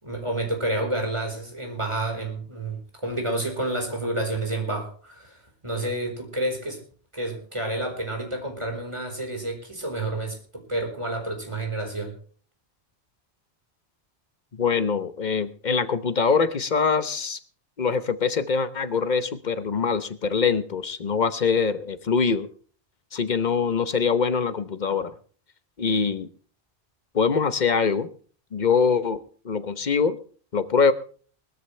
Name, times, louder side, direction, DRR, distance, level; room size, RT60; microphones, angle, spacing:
voice 1, 0.0-6.8 7.1-10.4 10.7-12.1, right 1 dB, 25° right, 2 dB, 4.5 m, -29 dB
voice 2, 14.5-17.4 17.8-22.5 23.1-25.1 25.8-26.3 27.1-28.1 28.5-30.2 30.5-30.9, left 5 dB, 45° left, 13 dB, 1.1 m, -23 dB
20.5 x 13.0 x 3.3 m, 0.42 s
omnidirectional pair, 1.1 m